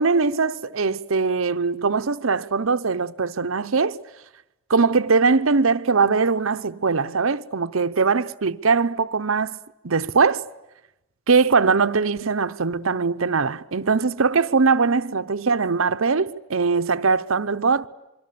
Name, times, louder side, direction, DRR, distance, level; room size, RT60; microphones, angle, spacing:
voice 1, 0.0-4.0 4.7-9.6 9.8-10.4 11.3-17.9, right 4 dB, 80° right, 0.9 m, -21 dB
26.0 x 24.5 x 8.5 m
head